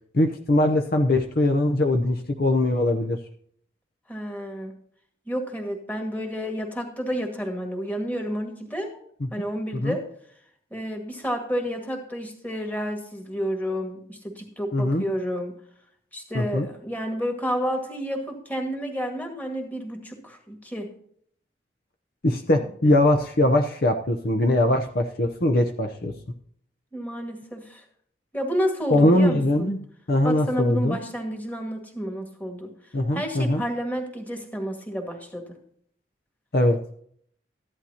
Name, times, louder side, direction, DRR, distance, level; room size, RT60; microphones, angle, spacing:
voice 1, 0.1-3.2 9.2-9.3 9.7-10.0 14.7-15.0 16.3-16.7 22.2-26.1 28.9-29.8 30.1-31.0 32.9-33.6 36.5-36.8, left 1 dB, 55° left, 4 dB, 0.8 m, -21 dB
voice 2, 4.1-4.7 5.3-9.0 9.3-10.0 10.7-15.6 16.1-20.9 22.9-23.0 26.9-27.8 28.3-29.8 30.2-32.7 33.1-35.5, equal, 10° left, 2 dB, 1.9 m, -30 dB
14.5 x 11.0 x 2.9 m, 0.63 s
head